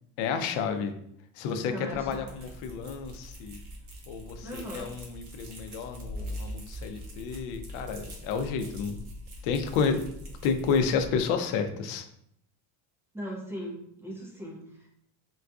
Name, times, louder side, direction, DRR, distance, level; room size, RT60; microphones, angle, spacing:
voice 1, 0.2-0.9 1.4-3.6 4.1-9.0 9.4-10.0 10.4-12.1, left 6 dB, 75° left, 8 dB, 0.6 m, -30 dB
voice 2, 1.7-2.4 4.4-4.9 13.1-14.9, equal, 5° right, -3 dB, 0.3 m, -39 dB
sound 1, 1.9-11.3, equal, 40° right, 0.9 m, -42 dB
3.8 x 2.5 x 2.3 m, 0.73 s
cardioid pair, 140°, 46 cm